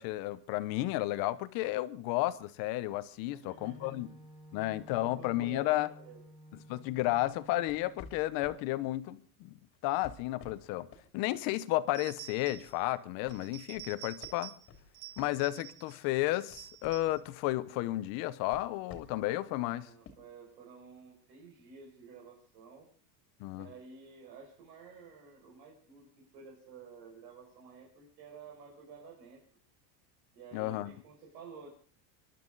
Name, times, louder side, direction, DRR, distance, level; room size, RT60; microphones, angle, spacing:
voice 1, 0.0-4.1 4.5-5.9 6.7-9.6 9.8-10.9 11.1-14.5 15.2-19.9 23.4-23.7 30.5-30.9, left 16 dB, 45° left, 0.9 m, -32 dB
voice 2, 3.3-3.9 5.0-6.2 19.8-22.9 23.5-26.1 26.3-29.4 30.3-31.7, right 5 dB, 80° right, 6.3 m, -52 dB
Wind instrument woodwind instrument, 3.6-8.3, right 1 dB, 10° right, 5.2 m, -54 dB
sound 1, 7.0-8.7 9.7-11.1 11.6-11.8 12.2-12.9 13.3-15.9 16.2-17.4 18.2-19.3 20.0-20.1, left 5 dB, 25° left, 2.6 m, -53 dB
sound 2, 11.9-12.8 13.3-14.7 14.9-16.0 16.3-17.2, right 15 dB, 30° right, 1.3 m, -49 dB
27.5 x 12.0 x 4.0 m
supercardioid pair, 165°, 50 cm